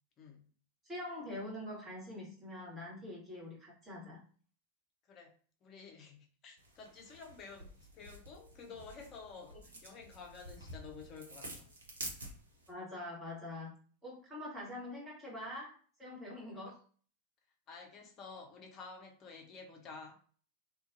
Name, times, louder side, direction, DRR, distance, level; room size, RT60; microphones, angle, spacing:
voice 1, 0.2-0.5 5.1-5.4 5.6-11.7 16.4-16.6 17.7-20.2, left 4 dB, 35° left, 0.7 m, -51 dB
voice 2, 0.8-4.2 12.7-13.7 14.0-16.8, left 1 dB, 15° right, 1.3 m, -44 dB
sound 1, 6.6-12.7, right 1 dB, 70° right, 0.7 m, -49 dB
2.5 x 2.4 x 2.6 m
figure-of-eight pair, 90°, 0 cm